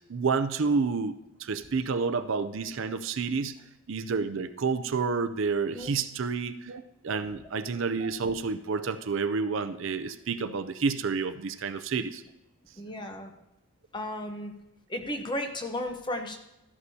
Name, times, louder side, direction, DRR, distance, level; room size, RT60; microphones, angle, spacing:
voice 1, 0.1-1.1 1.4-3.6 3.9-12.2, right 4 dB, 55° right, 12 dB, 0.5 m, -29 dB
voice 2, 12.8-13.3 13.9-14.5 14.9-16.4, left 1 dB, 20° left, 4 dB, 0.9 m, -34 dB
13.5 x 11.0 x 2.8 m, 0.92 s
head